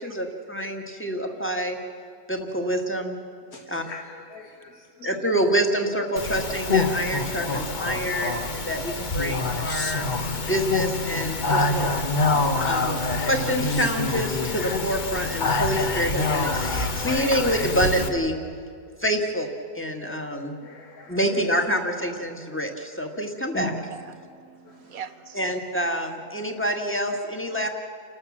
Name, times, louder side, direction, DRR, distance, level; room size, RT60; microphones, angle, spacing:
voice 1, 0.0-1.8 2.3-3.2 3.7-3.8 5.0-10.1 10.4-11.9 12.6-13.0 13.3-18.4 19.0-19.5 19.7-20.5 21.1-23.7 25.3-27.7, equal, 10° left, 3 dB, 1.7 m, -27 dB
voice 2, 3.5-5.2 20.6-21.4 24.6-25.0, left 4 dB, 70° left, -1 dB, 2.1 m, -45 dB
Speech, 6.2-18.1, left 3 dB, 35° left, 1.1 m, -26 dB
voice 3, 23.6-25.4 27.6-27.7, right 7 dB, 65° right, 12 dB, 1.3 m, -42 dB
29.0 x 13.0 x 7.4 m, 2.3 s
omnidirectional pair, 1.6 m